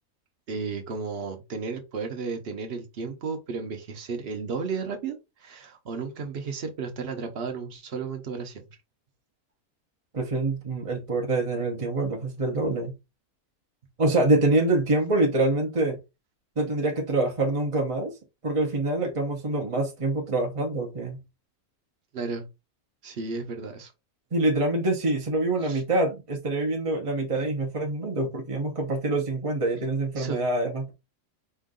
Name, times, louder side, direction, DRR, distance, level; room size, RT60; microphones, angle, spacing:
voice 1, 0.5-8.7 22.1-22.5 23.0-23.9 25.6-25.8 30.1-30.5, right 5 dB, 45° right, 1.0 m, -33 dB
voice 2, 10.1-13.0 14.0-16.0 16.6-18.2 18.4-21.2 24.3-30.9, right 2 dB, 30° right, 0.8 m, -25 dB
4.5 x 2.6 x 3.7 m
omnidirectional pair, 1.5 m